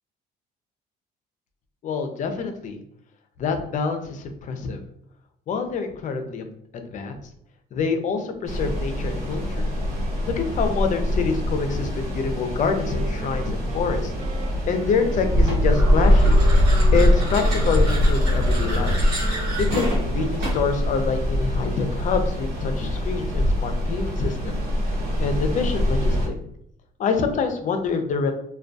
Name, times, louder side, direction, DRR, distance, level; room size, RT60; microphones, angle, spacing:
voice 1, 1.8-2.8 3.4-4.8 5.5-7.3 7.7-9.7 10.3-14.1 14.7-16.4 16.9-19.0 19.6-24.6 25.2-26.4 27.0-28.3, left 5 dB, 50° left, 6 dB, 0.4 m, -26 dB
sound 1, 8.5-26.3, equal, 65° right, 1.1 m, -22 dB
Wind instrument woodwind instrument, 12.6-20.8, right 7 dB, 40° right, 0.3 m, -39 dB
sound 2, 15.4-20.8, right 1 dB, 85° right, 1.1 m, -31 dB
2.2 x 2.2 x 2.5 m, 0.72 s
cardioid pair, 110°, 17 cm